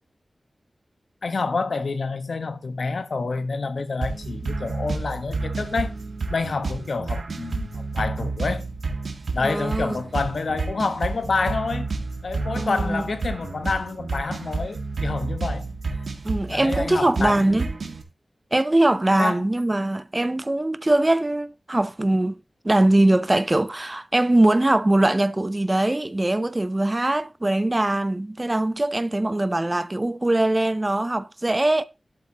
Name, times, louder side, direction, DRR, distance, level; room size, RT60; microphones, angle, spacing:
voice 1, 1.2-5.9 6.3-8.6 9.3-11.9 12.2-15.7 16.5-17.5 19.2-19.5, left 4 dB, 70° left, 1.1 m, -28 dB
sound 1, 4.0-18.0, right 3 dB, 75° right, 1.8 m, -30 dB
voice 2, 9.4-10.0 12.5-13.0 16.2-17.7 18.5-22.4 22.6-31.8, right 1 dB, 25° right, 0.5 m, -21 dB
11.5 x 8.4 x 2.9 m
wide cardioid pair, 100°, 0 cm